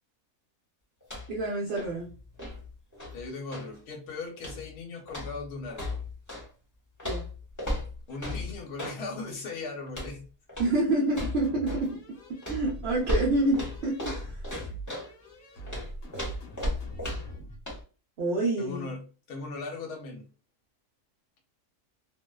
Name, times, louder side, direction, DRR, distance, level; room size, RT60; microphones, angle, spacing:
sound 1, 1.0-1.4 1.7-3.8 4.4-4.7 5.1-6.5 7.0-9.0 9.9-10.2 10.5-10.8 11.1-11.9 12.4-15.1 15.7-17.4 17.7-17.8, left 1 dB, 15° left, 0.9 m, -35 dB
voice 1, 1.3-2.1 7.0-7.2 10.6-12.0 12.4-14.4 18.2-18.9, right 2 dB, 55° right, 0.8 m, -27 dB
voice 2, 3.1-6.1 8.1-10.2 18.6-20.3, left 3 dB, 85° left, 1.3 m, -38 dB
sound 2, 11.4-17.6, right 2 dB, 65° left, 1.2 m, -42 dB
2.8 x 2.0 x 2.2 m
omnidirectional pair, 1.6 m